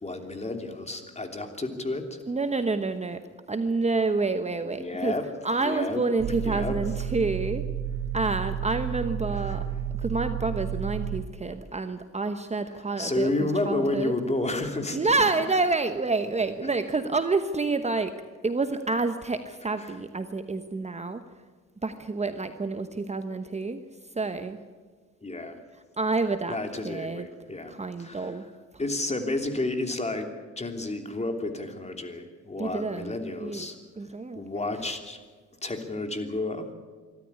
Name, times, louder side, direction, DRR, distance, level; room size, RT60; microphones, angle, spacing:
voice 1, 0.0-2.2 4.7-5.3 5.6-6.0 6.4-6.8 9.3-9.6 13.0-15.0 16.6-16.7 19.8-19.9 25.2-25.6 26.5-27.7 28.0-28.3 28.8-33.8 34.3-35.2 35.6-36.7, left 2 dB, 20° left, 5 dB, 3.1 m, -31 dB
voice 2, 2.3-3.2 3.5-5.2 5.4-7.6 8.1-9.7 10.0-14.1 14.9-18.1 18.4-21.2 21.8-23.8 24.1-24.6 26.0-26.6 26.8-27.3 27.7-28.4 32.6-33.7 34.0-34.6, right 3 dB, 20° right, 8 dB, 1.1 m, -28 dB
sound 1, 6.2-11.2, right 9 dB, 80° right, 2.7 m, -31 dB
24.0 x 13.0 x 9.9 m, 1.5 s
cardioid pair, 90°, 30 cm